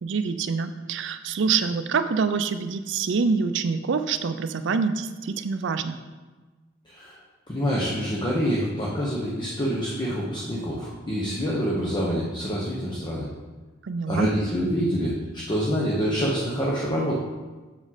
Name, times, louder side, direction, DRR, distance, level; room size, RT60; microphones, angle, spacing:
voice 1, 0.0-6.0 13.8-14.3, right 5 dB, 65° right, 10 dB, 0.4 m, -26 dB
voice 2, 6.9-7.2 7.5-13.3 14.1-17.2, equal, 25° left, -5 dB, 1.0 m, -26 dB
7.4 x 5.0 x 4.0 m, 1.3 s
head